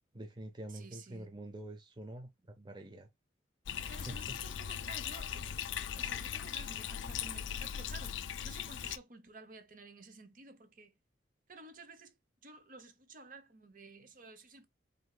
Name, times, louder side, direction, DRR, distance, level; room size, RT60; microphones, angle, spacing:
voice 1, 0.1-3.1 4.0-4.4, right 1 dB, 25° right, 0.7 m, -46 dB
voice 2, 0.7-1.3 3.9-5.6 5.9-10.9 11.5-12.2 12.4-14.7, right 3 dB, 45° right, 1.0 m, -53 dB
Bathtub (filling or washing), 3.7-9.0, left 9 dB, 80° left, 0.5 m, -39 dB
5.0 x 3.8 x 2.3 m
head